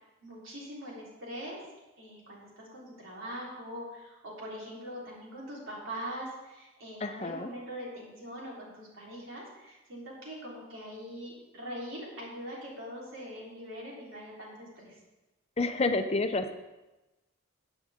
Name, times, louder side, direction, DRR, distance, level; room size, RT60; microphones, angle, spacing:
voice 1, 0.2-1.6 2.0-14.9, equal, 70° right, -4 dB, 3.9 m, -42 dB
voice 2, 7.0-7.5 15.6-16.5, left 3 dB, 30° left, 8 dB, 0.7 m, -29 dB
15.5 x 8.9 x 3.7 m, 1.1 s
head